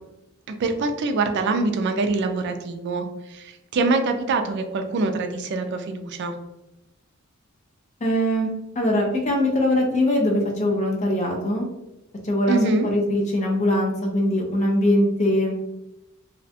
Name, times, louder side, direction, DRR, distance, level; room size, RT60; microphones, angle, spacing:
voice 1, 0.5-6.3 12.5-12.9, right 3 dB, 55° right, 6 dB, 0.3 m, -24 dB
voice 2, 8.0-8.5 8.8-11.6 12.2-12.6 12.8-15.5, left 1 dB, 35° left, 0 dB, 0.4 m, -21 dB
2.4 x 2.1 x 2.7 m, 0.93 s
head